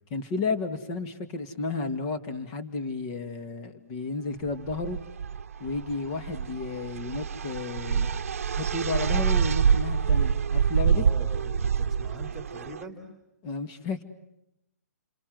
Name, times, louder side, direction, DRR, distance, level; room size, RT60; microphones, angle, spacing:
voice 1, 0.1-5.0 5.6-8.1 8.6-11.0 13.4-14.0, left 3 dB, 25° left, 9 dB, 2.2 m, -32 dB
sound 1, 4.5-12.8, right 7 dB, 60° right, 1.0 m, -26 dB
voice 2, 10.9-13.1, right 2 dB, ahead, 6 dB, 3.8 m, -43 dB
29.5 x 25.5 x 7.9 m, 0.84 s
hypercardioid pair, 165°, 9 cm